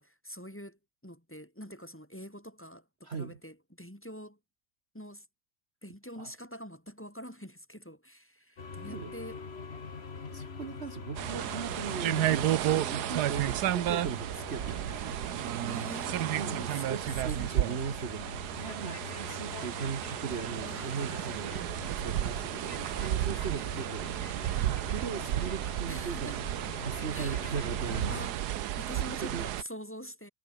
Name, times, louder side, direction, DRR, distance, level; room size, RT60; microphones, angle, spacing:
voice 1, 0.0-4.4 4.9-5.3 5.8-9.4 15.6-16.8 17.1-17.7 20.6-21.1 25.9-26.4 27.1-27.4 27.9-28.4 28.8-30.3, equal, 10° left, 2.8 m, -45 dB
voice 2, 3.0-3.4 6.2-6.3 8.6-9.1 10.3-15.7 16.3-26.4 26.8-28.3 29.2-29.5, right 5 dB, 45° right, 1.5 m, -39 dB
sound 1, 8.6-28.3, left 5 dB, 40° left, 1.9 m, -44 dB
sound 2, 11.2-29.6, right 12 dB, 85° right, 1.4 m, -32 dB
omnidirectional pair, 1.7 m